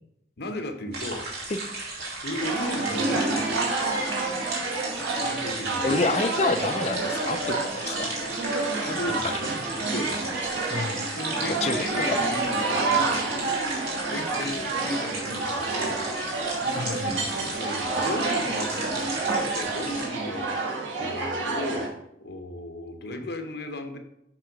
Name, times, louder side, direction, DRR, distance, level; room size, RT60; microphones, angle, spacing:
voice 1, 0.4-1.3 2.2-3.6 5.2-5.9 8.8-10.4 11.1-13.3 14.1-16.0 16.6-20.7 21.0-21.9 22.2-24.0, left 1 dB, 60° left, 6 dB, 0.9 m, -35 dB
sound 1, 0.9-20.1, right 2 dB, 60° right, 2.4 m, -35 dB
sound 2, 2.4-21.9, right 3 dB, 90° right, 1.5 m, -29 dB
voice 2, 5.8-8.2 9.2-9.4 10.7-11.0 11.6-12.2 16.7-17.2, left 3 dB, 35° left, 8 dB, 0.4 m, -28 dB
7.5 x 3.7 x 5.2 m, 0.81 s
head